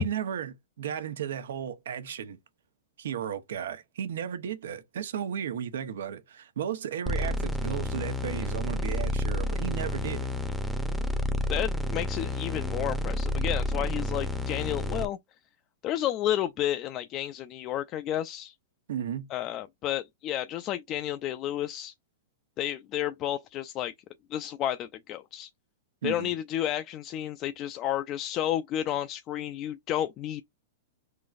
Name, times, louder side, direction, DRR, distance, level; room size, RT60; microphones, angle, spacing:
voice 1, 0.0-2.4 3.0-10.3 18.9-19.3 26.0-26.3, right 9 dB, 75° right, 0.9 m, -34 dB
sound 1, 7.1-15.1, left 1 dB, ahead, 0.7 m, -30 dB
voice 2, 11.5-15.2 15.8-18.5 19.3-21.9 22.6-23.9 24.3-25.5 26.0-30.4, left 12 dB, 35° left, 0.4 m, -31 dB
4.6 x 3.9 x 2.5 m
hypercardioid pair, 130°, 0 cm